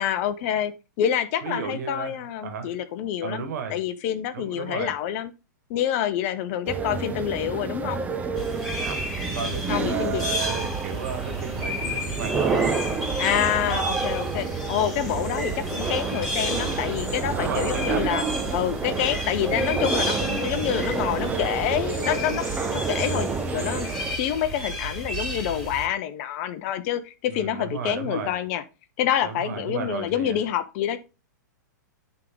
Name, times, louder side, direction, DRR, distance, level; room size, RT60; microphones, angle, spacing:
voice 1, 0.0-5.3 5.7-8.0 9.7-10.2 13.2-18.2 18.5-22.5 22.7-28.6 29.0-31.0, left 10 dB, 45° left, 0.8 m, -27 dB
voice 2, 1.4-2.7 3.2-3.8 4.3-4.9 8.7-12.7 17.3-18.1 27.3-28.3 29.2-30.4, right 6 dB, 65° right, 1.9 m, -33 dB
sound 1, 6.7-24.2, right 4 dB, 15° right, 0.9 m, -29 dB
sound 2, 8.4-25.9, equal, ahead, 3.5 m, -32 dB
10.5 x 3.7 x 3.8 m
hypercardioid pair, 115°, 10 cm